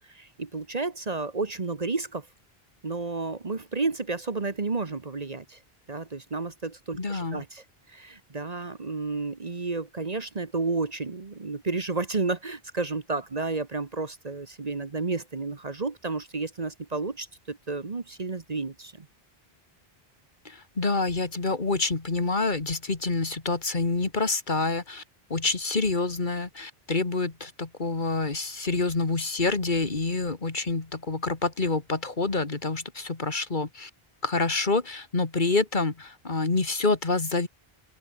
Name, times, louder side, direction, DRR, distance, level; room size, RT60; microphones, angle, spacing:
voice 1, 0.1-2.3 2.8-5.6 5.9-7.6 7.9-19.1, right 3 dB, 40° right, 1.3 m, -31 dB
voice 2, 7.0-7.4 20.5-25.0 25.3-33.9 34.2-37.5, left 3 dB, 50° left, 2.1 m, -27 dB
open air
omnidirectional pair, 1.0 m